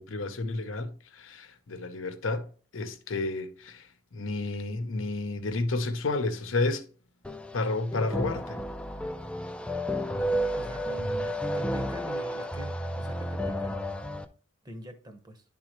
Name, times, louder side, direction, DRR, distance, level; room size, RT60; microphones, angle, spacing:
voice 1, 0.0-2.5 2.7-3.8 4.1-6.9 7.5-8.6, left 3 dB, 85° left, 0.8 m, -31 dB
sound 1, 7.2-14.2, equal, 5° left, 0.4 m, -32 dB
voice 2, 10.2-13.8 14.6-15.4, right 1 dB, 20° right, 0.9 m, -45 dB
11.0 x 3.7 x 3.0 m
head